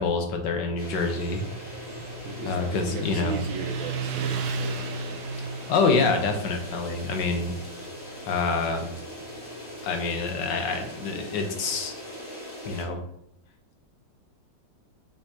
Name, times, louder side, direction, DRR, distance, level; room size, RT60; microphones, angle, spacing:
voice 1, 0.0-1.4 2.4-3.4 5.4-7.5 8.2-8.8 9.8-11.9 12.6-13.0, left 4 dB, 65° left, 4 dB, 1.6 m, -26 dB
sound 1, 0.8-12.9, equal, 40° left, 2.7 m, -41 dB
Motorcycle, 0.9-12.0, right 4 dB, 65° right, 1.1 m, -36 dB
voice 2, 2.2-5.2, right 3 dB, 85° right, 2 dB, 1.6 m, -36 dB
7.2 x 5.8 x 2.9 m, 0.74 s
omnidirectional pair, 2.1 m